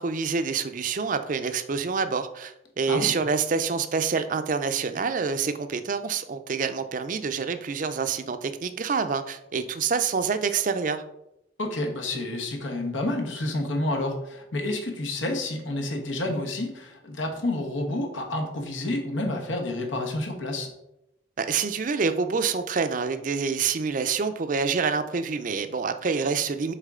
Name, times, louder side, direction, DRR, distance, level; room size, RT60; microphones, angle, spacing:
voice 1, 0.0-11.0 21.4-26.7, right 5 dB, 45° right, 10 dB, 0.4 m, -27 dB
voice 2, 11.6-20.7, left 1 dB, 90° left, 3 dB, 1.3 m, -29 dB
6.5 x 4.6 x 3.7 m, 0.85 s
head